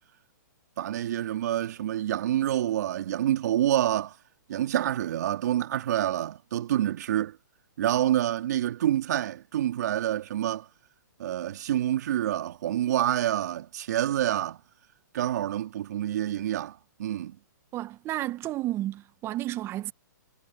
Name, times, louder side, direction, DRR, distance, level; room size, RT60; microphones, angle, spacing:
voice 1, 0.8-4.2 4.5-7.4 7.8-10.7 11.2-14.6 15.1-17.4, right 12 dB, 60° right, 2.6 m, -27 dB
voice 2, 17.7-19.9, right 15 dB, 25° right, 1.2 m, -32 dB
hypercardioid pair, 135°, 10 cm